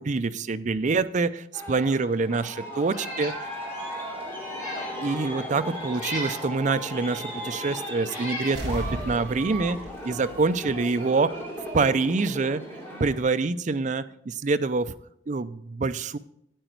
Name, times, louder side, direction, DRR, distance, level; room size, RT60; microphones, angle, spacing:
voice 1, 0.1-1.3 1.7-2.4 2.8-3.3 5.0-7.2 7.5-9.8 10.1-11.3 11.7-12.6 13.0-14.0 14.4-14.8 15.3-15.5 15.8-16.2, right 4 dB, 40° right, 12 dB, 0.4 m, -25 dB
Aircraft, 1.5-13.2, equal, 10° left, 2.7 m, -37 dB
Meow, 2.9-3.4 3.8-3.9 4.4-5.0 5.9-6.5 7.3-7.4 8.0-8.6, equal, 40° left, 4.4 m, -35 dB
voice 2, 2.9-5.0 9.8-9.9 12.3-12.4, right 1 dB, 10° right, -6 dB, 3.7 m, -54 dB
sound 1, 8.5-11.2 11.5-11.6, equal, 70° right, 4.2 m, -36 dB
9.1 x 9.0 x 4.5 m, 0.74 s
head